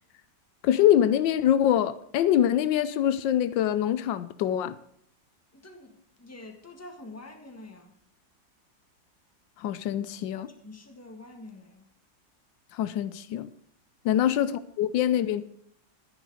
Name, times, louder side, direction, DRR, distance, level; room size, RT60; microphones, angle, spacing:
voice 1, 0.6-4.8 9.6-10.5 12.7-13.5 14.0-14.5 14.8-15.4, left 11 dB, 85° left, 1.4 m, -24 dB
voice 2, 5.5-8.0 10.4-11.9 14.1-14.2, left 2 dB, 10° left, 1.5 m, -46 dB
12.0 x 10.0 x 4.9 m
omnidirectional pair, 2.0 m